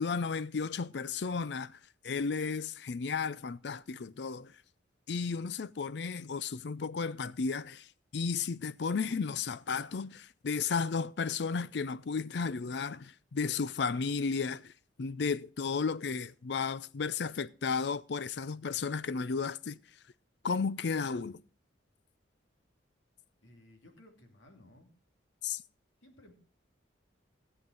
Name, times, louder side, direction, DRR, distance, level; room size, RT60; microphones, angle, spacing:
voice 1, 0.0-4.5 5.1-14.7 15.0-19.8 20.4-21.4 25.4-25.6, left 5 dB, 60° left, 0.5 m, -33 dB
voice 2, 23.4-24.9 26.0-26.3, left 1 dB, 90° left, 2.7 m, -58 dB
16.5 x 7.8 x 4.7 m
head